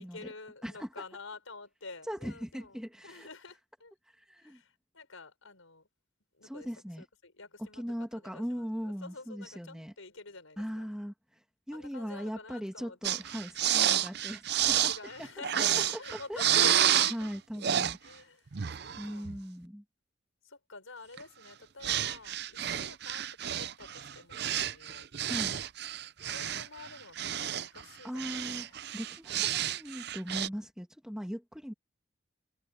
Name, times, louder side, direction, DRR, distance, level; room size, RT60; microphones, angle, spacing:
voice 1, 0.0-3.9 4.4-5.9 6.3-6.7 7.0-7.8 8.1-10.9 11.7-13.2 14.9-17.2 18.0-19.4 20.4-25.1 26.2-28.8, left 3 dB, 90° left, 6.0 m, -48 dB
voice 2, 2.1-3.3 4.2-4.6 6.4-7.0 7.8-9.9 10.6-11.1 11.7-14.9 16.3-16.4 17.1-18.0 19.0-19.8 25.2-25.5 28.0-31.7, equal, 5° right, 2.5 m, -39 dB
sound 1, 13.0-17.3 17.6-18.0 18.5-19.4 21.2-21.3 21.8-27.8 28.2-30.5, right 10 dB, 55° right, 0.6 m, -30 dB
head